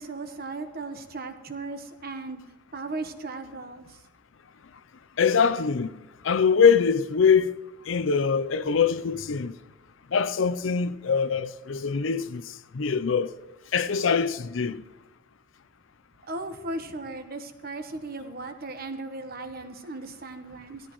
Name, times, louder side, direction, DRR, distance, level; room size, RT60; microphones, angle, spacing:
voice 1, 0.0-2.4 2.7-3.9 16.3-20.8, right 2 dB, 50° right, 1.2 m, -36 dB
voice 2, 5.2-5.9 6.2-7.5 7.9-9.6 10.1-12.4 12.7-13.3 13.7-14.8, left 6 dB, 75° left, 0.6 m, -23 dB
18.5 x 14.0 x 3.1 m
head